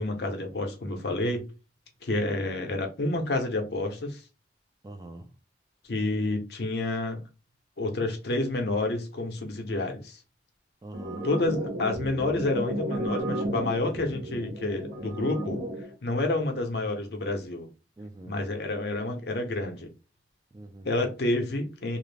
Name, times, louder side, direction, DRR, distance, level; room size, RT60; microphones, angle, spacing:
voice 1, 0.0-1.4 2.0-4.2 5.9-7.2 7.8-10.2 11.2-15.6 16.0-17.7 18.3-19.9 20.8-22.0, left 2 dB, 65° left, 0.6 m, -29 dB
voice 2, 4.8-5.3 10.8-11.3 18.0-18.4 20.5-21.1, right 2 dB, 20° right, 0.3 m, -44 dB
sound 1, 10.9-15.9, right 1 dB, 90° right, 0.8 m, -33 dB
2.4 x 2.0 x 3.2 m
head